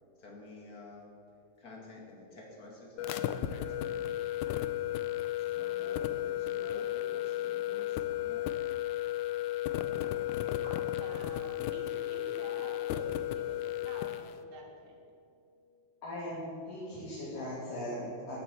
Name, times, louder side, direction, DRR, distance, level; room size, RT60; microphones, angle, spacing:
voice 1, 0.2-1.1 1.6-4.1 4.7-4.8 5.4-8.5, left 2 dB, 30° left, -1 dB, 2.2 m, -49 dB
sound 1, 3.0-14.3, left 13 dB, 80° left, 1.9 m, -34 dB
voice 2, 10.6-15.0, right 2 dB, 60° right, 1 dB, 2.8 m, -48 dB
voice 3, 16.0-18.4, left 1 dB, 65° left, -10 dB, 4.5 m, -39 dB
12.5 x 8.0 x 8.4 m, 2.7 s
omnidirectional pair, 4.0 m